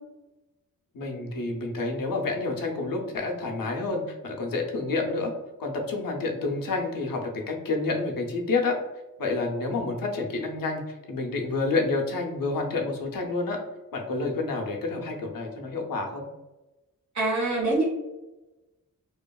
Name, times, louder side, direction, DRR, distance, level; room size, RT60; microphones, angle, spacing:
voice 1, 0.9-5.3 5.6-8.8 9.2-13.6 13.9-16.3, left 3 dB, 85° left, 1 dB, 0.6 m, -29 dB
voice 2, 17.1-17.8, right 2 dB, 55° right, -4 dB, 1.1 m, -24 dB
2.8 x 2.4 x 2.2 m, 1.0 s
wide cardioid pair, 150°, 33 cm